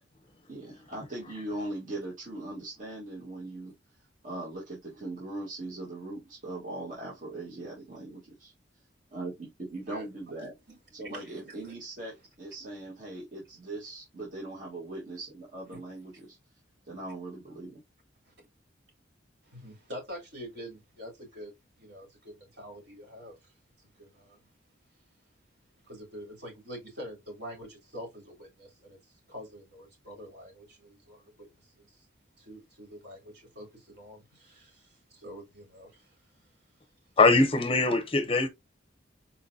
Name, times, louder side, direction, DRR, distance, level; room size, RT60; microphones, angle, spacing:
voice 1, 0.5-3.7 4.2-8.5 9.1-10.5 10.9-16.4 16.8-17.8, right 2 dB, 45° right, 1.4 m, -40 dB
voice 2, 11.0-11.7 15.7-15.8 18.3-18.4 19.4-21.5 21.8-23.4 24.0-24.4 25.8-31.5 31.8-32.0 32.4-36.1, equal, 60° right, 3.0 m, -46 dB
voice 3, 37.2-38.5, left 3 dB, 30° left, 0.6 m, -22 dB
4.4 x 3.7 x 2.6 m
head